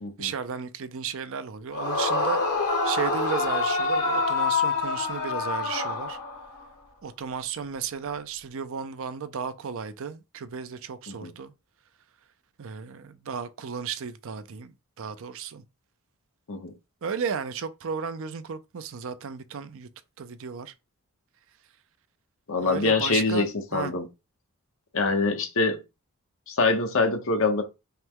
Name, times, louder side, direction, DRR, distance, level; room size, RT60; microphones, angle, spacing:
voice 1, 0.2-6.2 7.0-11.5 12.6-15.6 17.0-19.9 20.2-20.7 22.5-23.9, right 6 dB, 65° right, 0.5 m, -34 dB
Yell / Screaming, 1.7-6.6, left 3 dB, 90° left, 1.3 m, -26 dB
voice 2, 22.5-23.5 23.7-24.0 24.9-25.8 26.5-27.6, left 3 dB, 65° left, 1.0 m, -24 dB
5.6 x 2.2 x 3.6 m
head